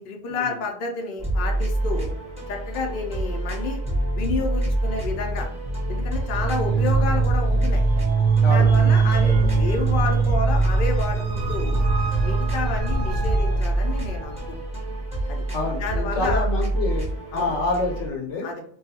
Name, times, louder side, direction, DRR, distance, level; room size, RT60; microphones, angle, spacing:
voice 1, 0.0-2.1 2.5-3.8 4.2-5.5 5.9-7.8 8.5-11.8 12.2-14.4 15.3-15.4 15.8-16.5 17.3-17.5 18.4-18.6, left 3 dB, 55° left, 1 dB, 0.7 m, -30 dB
sound 1, 1.2-18.1, right 2 dB, 5° right, 0.8 m, -27 dB
sound 2, 3.8-10.9, left 1 dB, 45° right, 0.5 m, -31 dB
sound 3, 6.2-14.5, right 5 dB, 80° right, 0.9 m, -22 dB
voice 2, 8.4-8.7 15.5-18.5, left 3 dB, 80° left, 0 dB, 1.0 m, -27 dB
2.7 x 2.3 x 2.7 m, 0.62 s
omnidirectional pair, 1.3 m